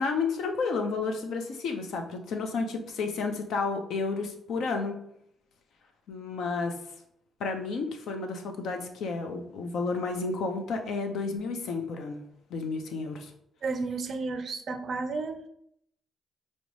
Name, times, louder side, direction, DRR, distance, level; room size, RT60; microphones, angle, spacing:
voice 1, 0.0-4.9 6.1-6.8 7.4-12.2 12.5-13.3, left 4 dB, 75° left, 5 dB, 0.6 m, -31 dB
voice 2, 13.6-15.5, right 4 dB, 50° right, 9 dB, 0.4 m, -32 dB
5.0 x 2.1 x 3.0 m, 0.71 s
cardioid pair, 90°, 0 cm